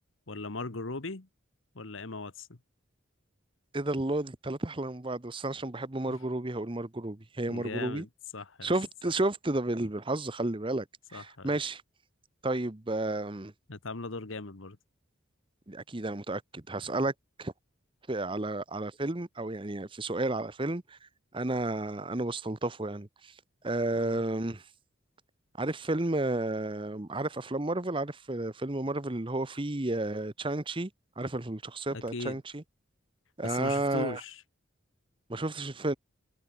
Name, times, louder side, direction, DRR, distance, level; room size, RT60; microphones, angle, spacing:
voice 1, 0.3-1.3 1.7-2.5 6.1-6.2 7.5-8.1 8.3-8.7 11.1-11.5 13.7-14.8 23.9-24.2 31.9-32.4 33.4-34.4, left 3 dB, 70° left, 1.4 m, -38 dB
voice 2, 3.7-8.0 8.6-10.8 11.1-11.8 12.4-13.5 15.7-17.1 17.4-17.5 18.1-21.0 21.3-23.3 23.6-24.6 25.6-30.9 31.2-32.6 33.4-34.2 35.3-35.9, right 2 dB, 25° right, 1.0 m, -32 dB
head